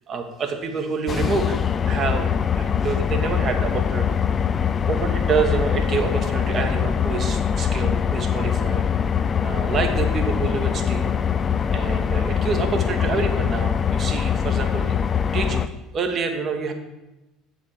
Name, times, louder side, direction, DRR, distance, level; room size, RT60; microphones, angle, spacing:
voice 1, 0.1-1.6 1.8-4.5 4.9-8.8 9.4-11.1 11.7-15.0 15.3-16.7, right 5 dB, 40° right, 5 dB, 1.3 m, -27 dB
sound 1, 1.1-15.7, left 7 dB, 30° left, 0.4 m, -23 dB
8.2 x 5.3 x 6.4 m, 1.0 s
figure-of-eight pair, 60°, 0 cm